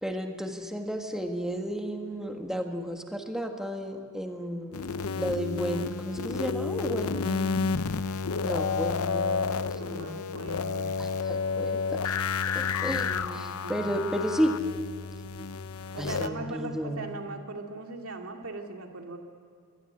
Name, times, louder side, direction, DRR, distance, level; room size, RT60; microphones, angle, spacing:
voice 1, 0.0-4.9 5.1-7.9 8.4-10.2 11.0-12.1 12.5-14.5 16.0-17.1, equal, ahead, 3 dB, 1.6 m, -33 dB
sound 1, 4.7-16.3, left 5 dB, 80° left, 0.7 m, -31 dB
voice 2, 9.7-11.0 12.8-13.9 15.9-19.2, right 2 dB, 75° right, 3 dB, 2.5 m, -40 dB
23.5 x 18.5 x 10.0 m, 2.3 s
head